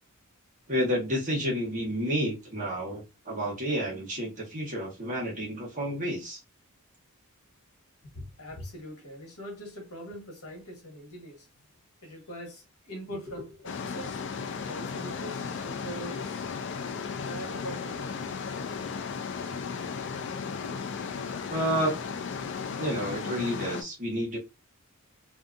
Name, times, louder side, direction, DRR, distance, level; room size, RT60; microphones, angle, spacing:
voice 1, 0.7-6.4 21.5-21.9 22.8-24.4, equal, 35° right, 1.1 m, -30 dB
voice 2, 8.0-11.5 12.0-14.2 14.7-16.5 17.3-18.2, equal, 70° left, 1.2 m, -42 dB
sound 1, 13.6-23.8, left 5 dB, 55° left, 0.4 m, -35 dB
2.6 x 2.4 x 2.4 m
head